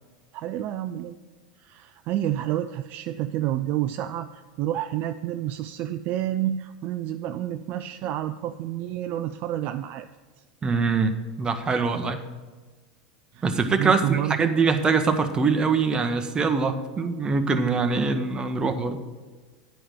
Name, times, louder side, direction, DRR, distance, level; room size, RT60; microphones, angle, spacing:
voice 1, 0.3-1.2 1.6-10.1 13.3-13.5 13.8-14.5, right 12 dB, 45° right, 10 dB, 0.4 m, -29 dB
voice 2, 10.6-12.2 13.4-19.0, right 4 dB, 20° right, 6 dB, 1.0 m, -23 dB
10.0 x 5.0 x 7.5 m, 1.3 s
hypercardioid pair, 95°, 4 cm